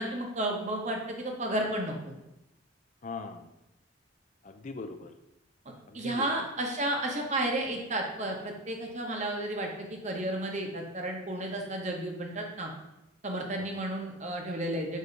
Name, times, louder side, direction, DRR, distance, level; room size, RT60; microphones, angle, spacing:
voice 1, 0.0-2.1 5.9-12.7 13.2-15.0, right 1 dB, 35° right, 2 dB, 0.9 m, -32 dB
voice 2, 3.0-3.5 4.4-5.1 5.9-6.5 13.6-13.9, left 3 dB, 40° left, 8 dB, 0.4 m, -41 dB
6.4 x 2.8 x 5.2 m, 0.91 s
head